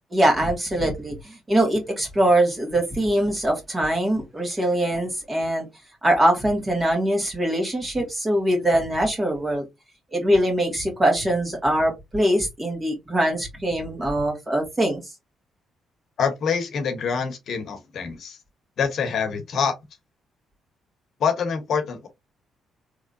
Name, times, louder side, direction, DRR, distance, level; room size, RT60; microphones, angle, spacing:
voice 1, 0.1-5.7 6.0-9.6 10.1-15.0, right 1 dB, 20° right, 2.1 m, -22 dB
voice 2, 16.2-18.4 18.8-19.8 21.2-22.1, left 6 dB, 60° left, 0.9 m, -25 dB
3.5 x 3.1 x 2.6 m
cardioid pair, 90°, 0 cm